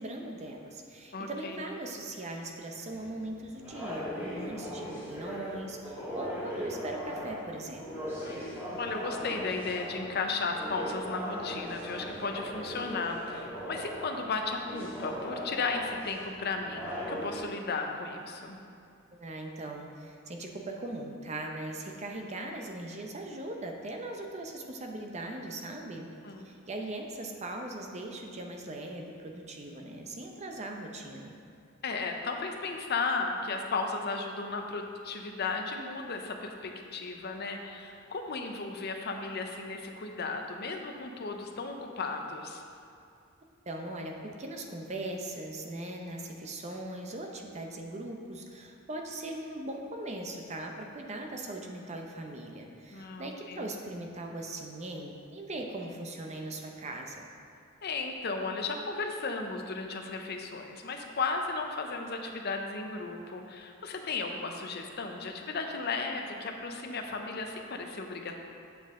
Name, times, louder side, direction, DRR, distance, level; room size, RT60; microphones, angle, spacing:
voice 1, 0.0-7.9 19.1-26.1 26.4-31.3 43.7-57.2, right 1 dB, 35° right, 2 dB, 0.7 m, -40 dB
voice 2, 1.1-1.6 8.2-8.4 8.8-18.6 26.2-26.5 31.8-42.6 52.9-53.7 57.8-68.4, left 4 dB, 50° left, 3 dB, 0.7 m, -35 dB
sound 1, 2.9-17.4, equal, 10° right, 1.7 m, -39 dB
8.7 x 5.6 x 3.7 m, 2.5 s
head